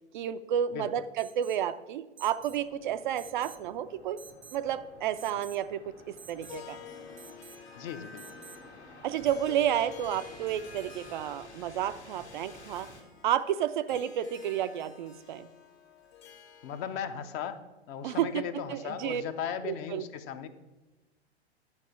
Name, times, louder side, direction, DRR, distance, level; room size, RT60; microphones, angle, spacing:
voice 1, 0.1-4.2 4.5-6.8 9.0-12.9 13.2-15.5 18.0-18.4 18.7-19.2 19.6-20.1, right 10 dB, 45° right, 12 dB, 0.4 m, -31 dB
Alarm, 1.2-1.7 2.2-2.6 3.2-3.7 4.2-4.6 5.2-5.6 6.2-6.6 7.2-7.6 8.2-8.6, right 8 dB, 75° right, 0.8 m, -51 dB
sound 1, 2.4-13.0, left 1 dB, 80° left, 1.8 m, -53 dB
Harp, 6.2-17.2, left 6 dB, 60° left, 1.3 m, -50 dB
voice 2, 7.7-8.4 16.6-17.6 17.9-20.5, left 8 dB, 30° left, 10 dB, 0.6 m, -37 dB
11.0 x 4.8 x 5.9 m, 1.1 s
figure-of-eight pair, 105°, 33 cm